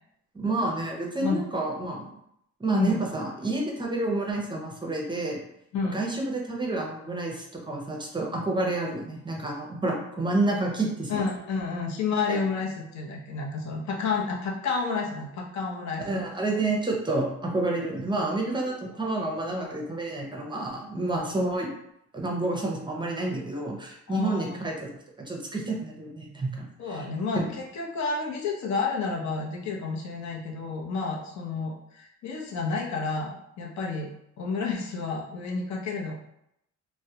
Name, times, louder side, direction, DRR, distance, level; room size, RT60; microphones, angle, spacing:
voice 1, 0.3-2.1 2.6-5.4 5.9-11.2 12.3-12.4 16.0-21.7 22.1-24.9 25.2-27.1 27.3-27.5, right 2 dB, 15° right, -1 dB, 0.6 m, -29 dB
voice 2, 11.1-16.2 18.7-18.8 24.1-24.5 26.8-34.1 34.4-36.2, left 4 dB, 65° left, -1 dB, 0.7 m, -30 dB
2.3 x 2.1 x 2.7 m, 0.78 s
cardioid pair, 90°, 30 cm